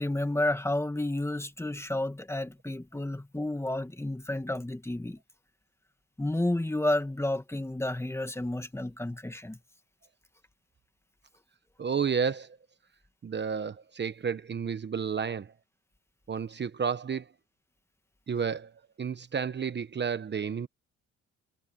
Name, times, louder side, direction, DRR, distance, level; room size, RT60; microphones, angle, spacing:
voice 1, 0.0-5.2 6.2-9.6, left 1 dB, 10° left, 1.8 m, -31 dB
voice 2, 11.8-12.6 13.2-15.5 16.3-17.3 18.3-18.7 19.0-20.7, right 6 dB, 35° right, 1.1 m, -31 dB
cardioid pair, 90°, 30 cm